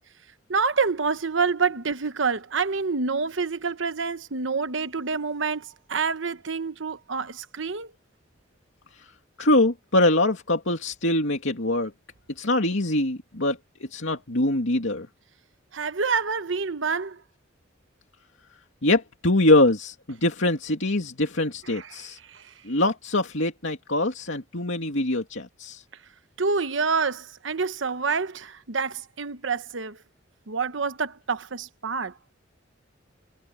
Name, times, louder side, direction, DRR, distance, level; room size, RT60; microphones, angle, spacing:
voice 1, 0.5-7.9 15.7-17.2 21.7-21.8 26.4-30.0 30.5-32.1, right 5 dB, 75° right, 1.1 m, -27 dB
voice 2, 9.4-11.9 12.4-15.1 18.8-22.2 22.6-25.8, left 1 dB, 75° left, 2.5 m, -23 dB
head